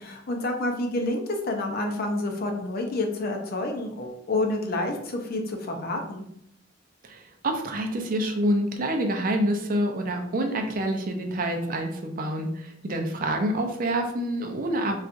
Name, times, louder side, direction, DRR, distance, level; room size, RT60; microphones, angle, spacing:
voice 1, 0.0-6.3, left 2 dB, 55° left, 3 dB, 0.5 m, -29 dB
voice 2, 7.0-15.0, right 1 dB, 50° right, 3 dB, 0.5 m, -27 dB
4.1 x 2.3 x 2.5 m, 0.73 s
head